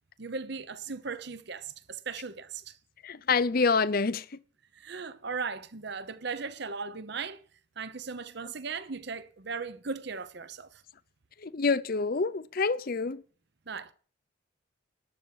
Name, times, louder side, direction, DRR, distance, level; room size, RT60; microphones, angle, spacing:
voice 1, 0.2-2.7 4.7-7.4 7.8-10.7 13.7-13.9, right 5 dB, 55° right, 0.8 m, -37 dB
voice 2, 3.0-4.2 11.4-13.2, left 4 dB, 45° left, 0.5 m, -27 dB
12.0 x 7.2 x 7.3 m
head